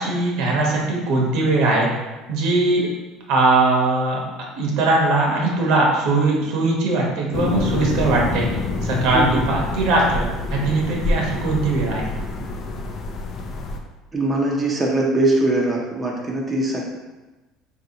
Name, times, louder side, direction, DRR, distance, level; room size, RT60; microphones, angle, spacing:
voice 1, 0.0-1.9 2.3-2.9 3.3-4.2 4.6-8.5 8.8-12.1, right 2 dB, 70° right, -1 dB, 0.9 m, -20 dB
sound 1, 7.3-13.8, left 3 dB, 40° left, 0.4 m, -26 dB
voice 2, 14.1-16.8, right 2 dB, 15° right, -3 dB, 0.5 m, -21 dB
4.0 x 2.7 x 2.8 m, 1.1 s
cardioid pair, 130°, 0 cm